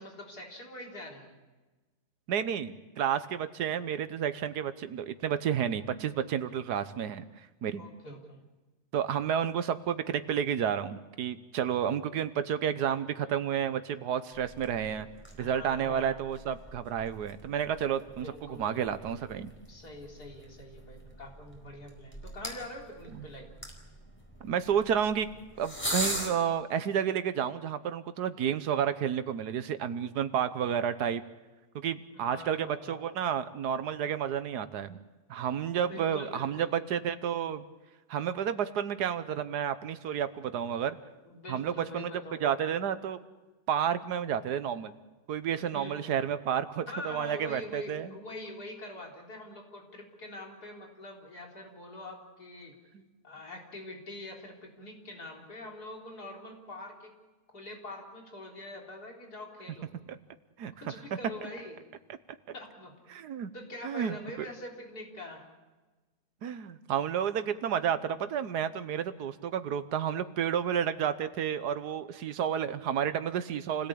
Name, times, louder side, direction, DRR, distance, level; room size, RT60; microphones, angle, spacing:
voice 1, 0.0-1.4 7.7-8.4 15.4-16.4 18.2-19.3 19.7-23.5 32.1-33.1 35.9-36.7 41.2-42.7 45.7-46.2 46.9-52.7 53.2-57.1 57.5-59.9 60.8-61.9 62.5-63.2 63.5-65.5, left 1 dB, 80° left, 0 dB, 4.3 m, -44 dB
voice 2, 2.3-7.2 7.6-7.8 8.9-15.1 15.4-19.5 23.1-23.2 24.4-25.3 25.6-31.2 31.7-35.0 35.3-37.6 38.1-41.0 41.5-42.1 42.4-43.2 43.7-44.9 45.3-48.1 60.1-60.2 60.6-60.7 63.1-63.5 63.8-64.5 66.4-73.9, right 8 dB, 85° right, 12 dB, 1.5 m, -31 dB
sound 1, 14.3-26.3, equal, 5° left, 4.5 m, -42 dB
28.5 x 17.5 x 8.5 m, 1.2 s
omnidirectional pair, 1.7 m